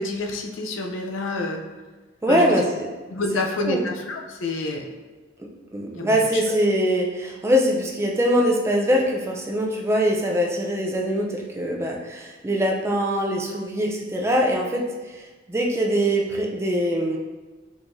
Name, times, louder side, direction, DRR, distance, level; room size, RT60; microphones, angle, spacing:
voice 1, 0.0-1.6 2.3-2.6 3.1-4.8 6.0-6.4, left 2 dB, 75° left, 2 dB, 0.5 m, -28 dB
voice 2, 2.2-2.7 3.6-3.8 5.4-17.2, equal, 15° right, -1 dB, 0.4 m, -23 dB
4.8 x 3.7 x 2.6 m, 1.3 s
head